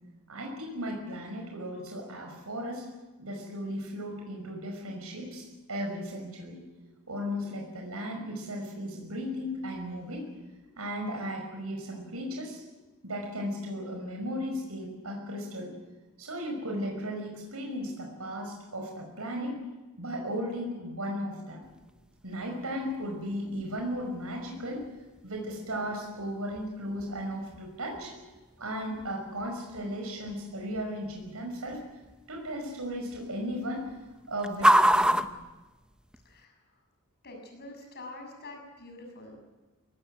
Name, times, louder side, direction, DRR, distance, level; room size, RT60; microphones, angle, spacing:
voice 1, 0.3-2.9 3.2-6.6 7.1-10.3 10.8-12.8 13.0-15.7 16.2-19.6 20.0-21.6 22.2-24.8 25.2-28.3 28.6-31.8 32.3-33.9 34.3-35.2, equal, 75° right, 1 dB, 5.6 m, -36 dB
sound 1, 21.6-36.4, right 1 dB, 5° right, 0.8 m, -33 dB
voice 2, 36.2-36.6 37.2-39.4, left 2 dB, 45° left, 3 dB, 6.8 m, -45 dB
23.0 x 18.5 x 9.3 m, 1.2 s
head